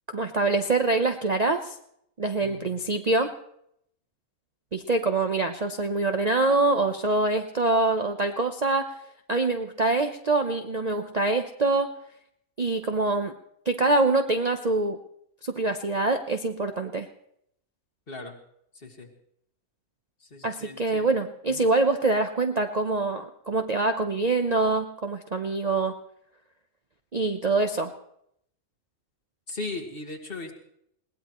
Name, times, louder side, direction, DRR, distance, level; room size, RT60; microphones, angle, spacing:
voice 1, 0.1-1.8 2.2-3.3 4.7-8.9 9.3-11.9 12.6-13.3 13.7-15.0 15.4-17.1 20.4-25.9 27.1-27.9, right 3 dB, 35° right, 5 dB, 0.7 m, -25 dB
voice 2, 2.4-2.8 18.1-18.4 18.7-19.1 20.2-21.1 21.5-21.7 29.5-30.5, left 2 dB, 40° left, 2 dB, 2.1 m, -38 dB
21.0 x 18.0 x 3.1 m, 0.73 s
omnidirectional pair, 1.5 m